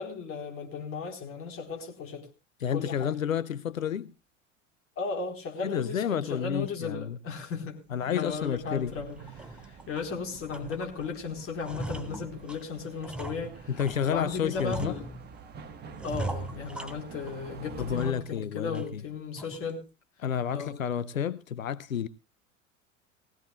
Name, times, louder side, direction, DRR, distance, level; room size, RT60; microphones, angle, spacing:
voice 1, 0.0-2.3 2.7-3.1 5.0-7.8 8.1-15.1 16.0-19.8 20.5-20.8, left 5 dB, 35° left, 4.1 m, -36 dB
voice 2, 2.6-4.1 5.6-7.2 7.9-8.9 13.7-14.9 17.8-19.0 20.2-22.1, left 8 dB, 85° left, 0.6 m, -30 dB
sound 1, 8.0-8.2 8.6-8.8 9.2-10.1 10.5-11.1 11.4-14.0 14.5-15.5 16.0-17.4 17.8-18.4 18.7-18.8 19.4-19.7, right 2 dB, 5° right, 0.9 m, -40 dB
sound 2, 8.3-18.1, right 6 dB, 25° right, 1.4 m, -48 dB
20.0 x 16.0 x 2.3 m
figure-of-eight pair, 85°, 39 cm